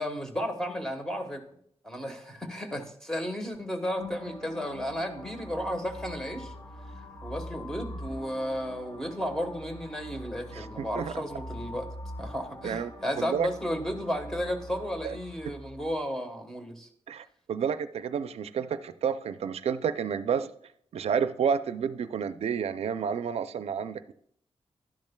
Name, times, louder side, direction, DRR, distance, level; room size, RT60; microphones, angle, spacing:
voice 1, 0.0-1.4 1.8-6.5 7.2-11.9 12.2-16.9, equal, 5° left, 5 dB, 1.2 m, -33 dB
sound 1, 4.0-15.9, left 1 dB, 40° left, 2.0 m, -43 dB
voice 2, 10.5-11.2 12.6-12.9 13.2-13.5 15.0-15.1 17.1-20.5 20.9-24.1, right 7 dB, 85° right, 12 dB, 0.4 m, -30 dB
12.0 x 10.5 x 2.2 m, 0.67 s
wide cardioid pair, 130°, 10 cm